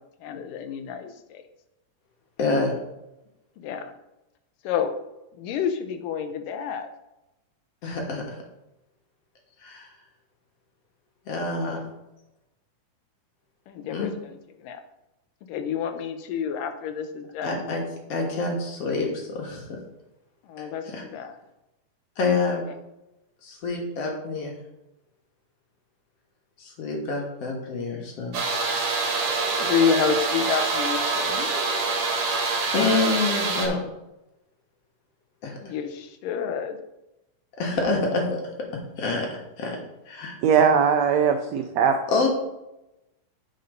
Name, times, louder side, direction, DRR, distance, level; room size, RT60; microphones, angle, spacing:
voice 1, 0.2-1.4 3.6-3.9 4.6-4.9 5.3-6.9 13.7-14.8 15.5-17.6 20.4-21.4 29.6-31.5 35.6-36.8, left 7 dB, 90° left, 8 dB, 2.4 m, -29 dB
voice 2, 2.4-2.8 7.8-8.4 9.6-9.9 11.3-11.8 13.9-14.1 17.4-17.8 18.1-19.8 20.6-21.0 22.2-22.6 23.4-24.5 26.6-28.4 32.7-33.8 35.4-35.7 37.6-38.4 39.0-39.3 39.6-39.8 40.1-40.4 42.1-42.3, left 3 dB, 55° left, 0 dB, 2.3 m, -27 dB
sound 1, 28.3-33.7, right 4 dB, 50° right, 2.0 m, -25 dB
voice 3, 40.4-42.0, right 7 dB, 85° right, 6 dB, 1.5 m, -20 dB
8.5 x 5.3 x 5.2 m, 0.94 s
omnidirectional pair, 3.8 m